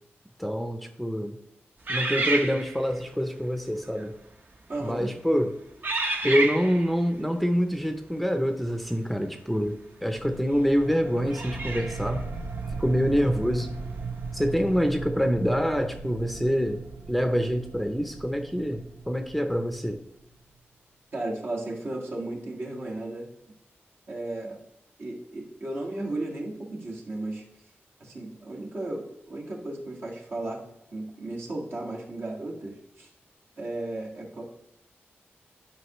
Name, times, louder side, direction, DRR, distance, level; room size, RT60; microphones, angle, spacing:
voice 1, 0.4-1.4 1.9-4.1 4.8-5.5 6.2-12.3 12.8-13.8 14.3-16.8 17.1-20.0, equal, ahead, 6 dB, 0.6 m, -26 dB
sound 1, 1.9-3.0 3.8-4.1 4.7-5.1 5.8-7.0 9.7-9.8 11.3-12.1, right 2 dB, 50° right, 0.9 m, -29 dB
voice 2, 4.7-5.2 21.1-23.3 24.1-24.6 25.0-27.4 28.0-30.6 30.9-33.1 33.6-34.4, right 2 dB, 65° right, -3 dB, 1.9 m, -34 dB
sound 2, 10.2-20.3, right 4 dB, 85° right, 0.7 m, -37 dB
11.0 x 5.2 x 3.1 m, 0.82 s
wide cardioid pair, 105°, 4 cm